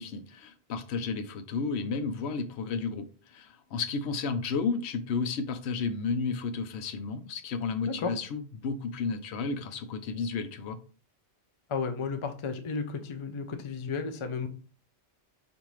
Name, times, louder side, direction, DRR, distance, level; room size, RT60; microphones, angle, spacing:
voice 1, 0.0-10.8, left 4 dB, 80° left, 0.8 m, -32 dB
voice 2, 7.8-8.1 11.7-14.5, left 5 dB, 45° left, 0.4 m, -33 dB
5.2 x 2.6 x 3.0 m
omnidirectional pair, 1.1 m